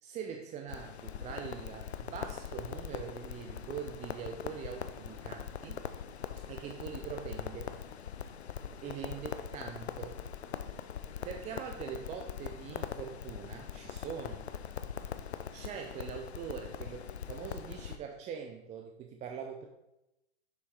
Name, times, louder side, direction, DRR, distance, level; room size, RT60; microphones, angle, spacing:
voice 1, 0.0-5.8 6.4-7.8 8.8-10.2 11.2-14.5 15.5-19.7, right 7 dB, 20° right, 3 dB, 0.6 m, -43 dB
Crackle, 0.7-18.0, left 8 dB, 90° left, 0.7 m, -42 dB
7.0 x 6.4 x 4.6 m, 0.92 s
hypercardioid pair, 120°, 32 cm